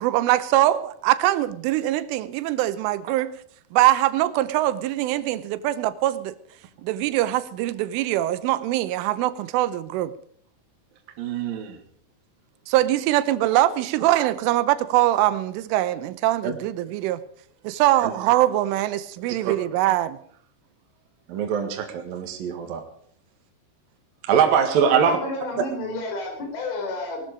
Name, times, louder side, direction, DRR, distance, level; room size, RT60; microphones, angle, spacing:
voice 1, 0.0-3.3 3.7-6.3 6.8-10.1 12.7-17.2 17.6-20.2, right 15 dB, 85° right, 3.4 m, -22 dB
voice 2, 11.2-11.8 16.4-16.5 18.0-18.1 19.4-19.5 21.3-22.8 24.3-25.2, right 7 dB, 60° right, 3.0 m, -22 dB
voice 3, 24.9-27.2, left 2 dB, 85° left, 6.5 m, -31 dB
19.5 x 13.0 x 5.1 m
omnidirectional pair, 5.5 m